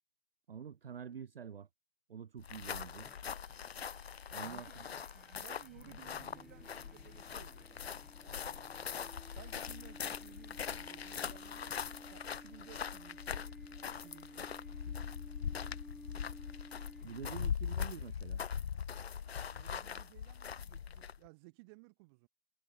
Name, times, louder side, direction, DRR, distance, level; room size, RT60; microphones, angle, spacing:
voice 1, 0.5-1.7 2.1-3.1 4.3-5.0 17.0-18.4, right 7 dB, 40° right, 0.9 m, -47 dB
sound 1, 2.4-21.3, left 7 dB, 40° left, 1.1 m, -42 dB
sound 2, 3.0-17.5, equal, ahead, 0.4 m, -56 dB
voice 2, 4.4-8.7 9.3-16.2 17.6-17.7 19.2-22.3, right 28 dB, 15° right, 2.1 m, -60 dB
figure-of-eight pair, 150°, 46 cm